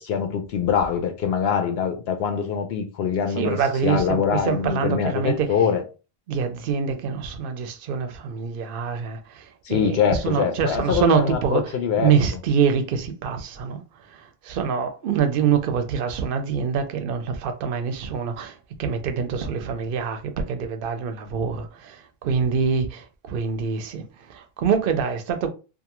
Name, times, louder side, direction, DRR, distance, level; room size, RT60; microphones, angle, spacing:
voice 1, 0.0-5.8 9.6-12.1, left 7 dB, 80° left, 0.8 m, -24 dB
voice 2, 3.4-5.5 6.3-13.8 14.1-25.5, right 6 dB, 65° right, 0.7 m, -25 dB
2.5 x 2.4 x 2.9 m
omnidirectional pair, 1.0 m